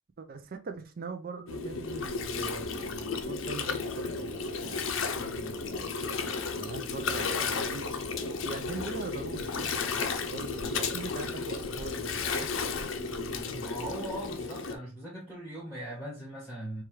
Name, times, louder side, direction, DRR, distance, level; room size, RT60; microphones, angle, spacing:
voice 1, 0.2-5.9 6.6-7.9 8.2-13.9, right 4 dB, 40° right, 0.4 m, -42 dB
Gurgling, 1.5-14.7, left 4 dB, 65° left, 0.6 m, -33 dB
voice 2, 13.5-16.8, right 1 dB, ahead, 1.3 m, -39 dB
4.5 x 2.4 x 3.1 m
head